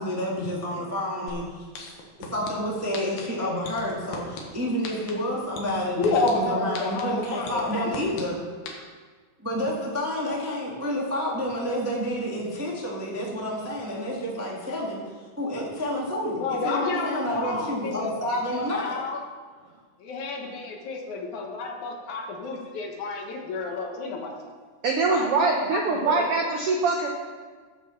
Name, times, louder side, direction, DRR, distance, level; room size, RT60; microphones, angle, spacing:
voice 1, 0.0-1.9 2.3-8.4 9.4-15.0 15.4-19.0, equal, 20° right, -4 dB, 0.4 m, -29 dB
sound 1, 1.3-1.4 1.7-2.5 2.9-3.2 3.6-4.4 4.8-5.1 5.6-6.3 6.7-7.0 7.5-8.2 8.7-8.8, left 7 dB, 85° left, 3.1 m, -36 dB
voice 2, 6.0-8.1 16.4-18.1 18.5-19.2 20.0-24.4 25.1-26.3, left 3 dB, 65° left, 1 dB, 2.5 m, -30 dB
voice 3, 24.8-27.1, right 3 dB, 85° right, 1 dB, 1.2 m, -23 dB
11.5 x 6.0 x 7.0 m, 1.5 s
omnidirectional pair, 4.0 m